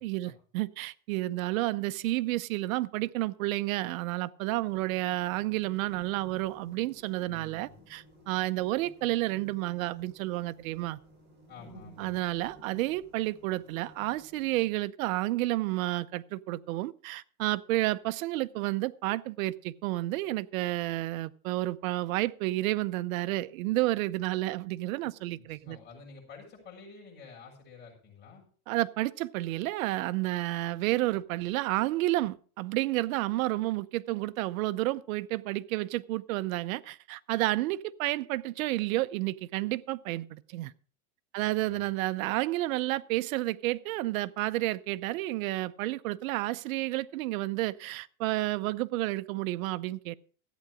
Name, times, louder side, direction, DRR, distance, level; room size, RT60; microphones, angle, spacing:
voice 1, 0.0-11.0 12.0-25.8 28.7-40.7 41.3-50.1, right 17 dB, 70° right, 0.7 m, -31 dB
sound 1, 4.7-14.7, right 1 dB, 25° right, 5.0 m, -56 dB
voice 2, 7.2-7.8 11.5-12.2 25.5-28.4 41.6-41.9, left 4 dB, 25° left, 7.3 m, -50 dB
14.5 x 8.5 x 4.9 m
supercardioid pair, 145°, 43 cm